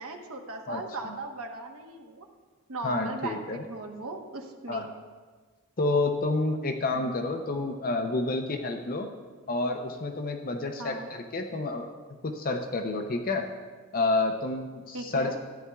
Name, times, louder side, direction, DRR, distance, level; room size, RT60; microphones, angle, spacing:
voice 1, 0.0-2.3 2.7-4.8 6.9-7.2 10.8-11.1 14.9-15.4, right 3 dB, 85° right, 3 dB, 1.0 m, -38 dB
voice 2, 0.7-1.2 2.8-3.6 4.7-4.9 5.8-9.1 9.5-11.9 12.2-13.5 13.9-15.4, left 2 dB, 40° left, 5 dB, 0.6 m, -29 dB
14.0 x 9.7 x 2.3 m, 1.4 s
head